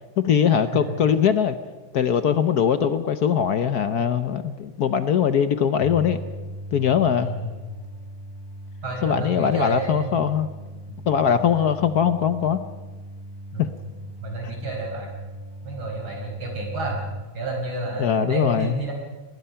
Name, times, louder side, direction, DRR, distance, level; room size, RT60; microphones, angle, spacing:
voice 1, 0.2-1.6 1.9-6.2 6.7-7.3 9.0-10.5 11.1-12.6 13.6-13.7 18.0-18.8, left 8 dB, 60° left, 11 dB, 1.2 m, -21 dB
sound 1, 5.8-17.2, right 1 dB, 10° right, 2.8 m, -38 dB
voice 2, 7.2-7.5 8.8-10.2 11.4-11.7 13.5-13.7 14.2-15.1 15.6-17.0 17.3-18.9, right 2 dB, 75° right, 1 dB, 5.8 m, -30 dB
25.5 x 20.5 x 5.7 m, 1.3 s
omnidirectional pair, 2.2 m